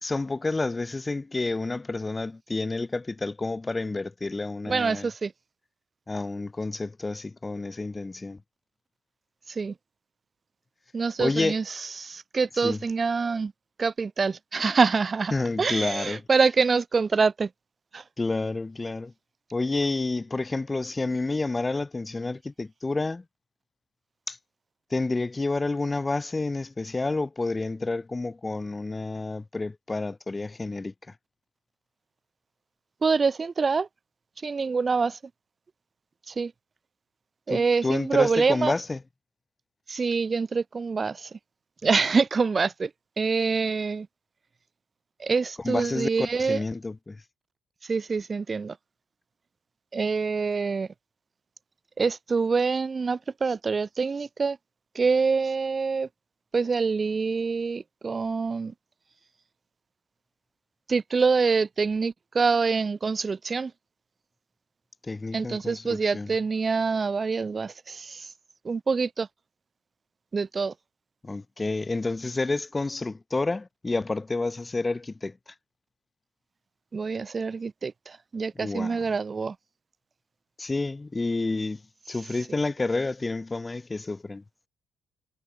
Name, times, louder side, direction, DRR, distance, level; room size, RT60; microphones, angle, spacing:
voice 1, 0.0-5.1 6.1-8.4 11.2-11.6 12.6-12.8 15.3-16.2 18.2-19.1 19.5-23.2 24.3-24.4 24.9-30.9 37.5-39.0 45.6-47.2 65.0-66.3 71.2-75.4 78.6-79.0 80.6-81.8 82.1-84.4, left 3 dB, 20° left, 3.0 m, -29 dB
voice 2, 4.6-5.3 9.5-9.7 10.9-13.5 13.8-17.5 17.9-18.0 33.0-33.9 34.4-35.2 36.3-36.5 37.5-38.7 39.9-41.4 41.8-42.9 43.2-44.1 45.2-46.6 47.8-48.8 49.9-50.9 52.0-54.6 54.9-56.1 56.5-58.7 60.9-63.7 65.3-68.3 68.6-69.3 70.3-70.7 76.9-79.6, right 4 dB, 35° right, 3.0 m, -25 dB
cardioid pair, 90°, 0 cm